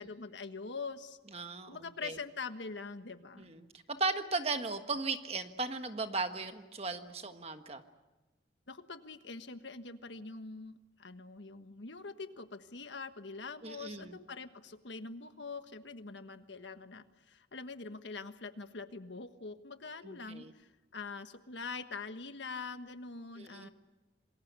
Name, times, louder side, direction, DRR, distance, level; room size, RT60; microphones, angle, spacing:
voice 1, 0.0-1.2 1.6-3.5 8.7-23.7, left 4 dB, 75° left, 9 dB, 1.4 m, -44 dB
voice 2, 1.3-2.2 3.4-7.8 13.6-14.2 20.0-20.5 23.4-23.7, right 3 dB, 35° right, 7 dB, 1.5 m, -37 dB
27.0 x 21.0 x 8.3 m, 1.1 s
head